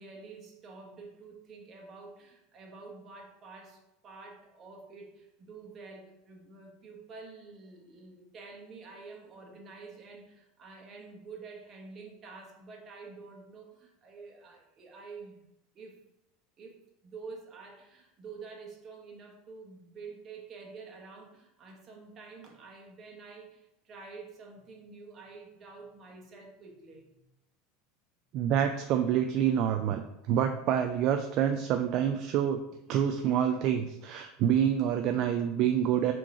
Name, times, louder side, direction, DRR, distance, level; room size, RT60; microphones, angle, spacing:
voice 1, 0.0-15.4 15.7-16.0 16.6-27.1, right 4 dB, 40° right, 1 dB, 1.2 m, -48 dB
voice 2, 28.3-30.0 30.3-32.6 32.9-36.1, right 9 dB, 55° right, 6 dB, 0.3 m, -27 dB
3.7 x 3.0 x 4.7 m, 0.86 s
supercardioid pair, 105°, 0 cm